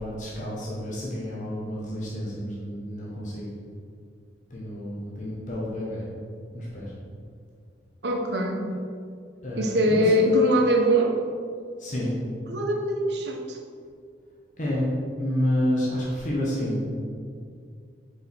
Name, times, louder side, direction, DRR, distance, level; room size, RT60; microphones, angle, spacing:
voice 1, 0.0-3.5 4.5-6.0 6.5-6.9 9.4-10.3 11.8-12.2 14.6-14.9 15.2-16.8, left 1 dB, 45° left, -5 dB, 1.3 m, -29 dB
voice 2, 8.0-8.7 9.6-11.2 12.5-13.6, equal, 75° right, 3 dB, 0.8 m, -22 dB
6.4 x 4.8 x 4.5 m, 2.2 s
head